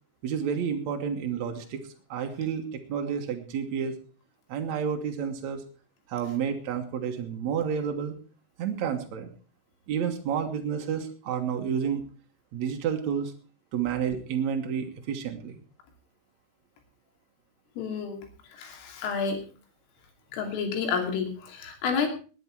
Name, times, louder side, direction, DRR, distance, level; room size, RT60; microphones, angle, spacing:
voice 1, 0.2-1.8 2.1-3.9 4.5-5.6 6.1-8.1 8.6-9.3 9.9-12.0 12.5-13.3 13.7-15.5, right 7 dB, 90° right, 4 dB, 1.5 m, -30 dB
voice 2, 17.8-18.2 18.5-19.4 20.3-22.1, left 6 dB, 90° left, 4 dB, 5.4 m, -30 dB
19.5 x 10.0 x 4.7 m, 0.38 s
omnidirectional pair, 5.6 m